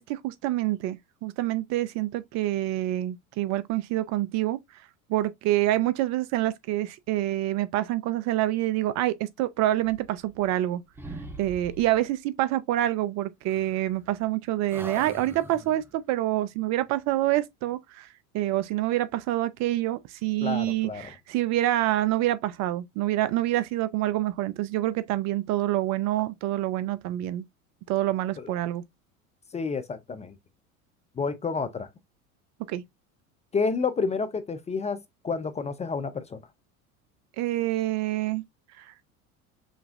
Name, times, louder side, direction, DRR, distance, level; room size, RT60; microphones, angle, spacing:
voice 1, 0.0-4.6 5.1-10.8 11.4-18.1 18.3-27.4 27.9-28.8 32.7-32.8 37.4-38.4 38.8-38.9, right 14 dB, 40° right, 0.4 m, -27 dB
sound 1, 9.8-10.7 11.0-12.1 13.5-14.3 14.7-15.9, right 2 dB, 5° right, 0.9 m, -43 dB
voice 2, 20.4-21.1 28.4-28.5 29.5-30.3 31.2-31.9 33.5-36.4, left 4 dB, 15° left, 0.4 m, -30 dB
5.1 x 3.4 x 2.4 m
hypercardioid pair, 80°, 42 cm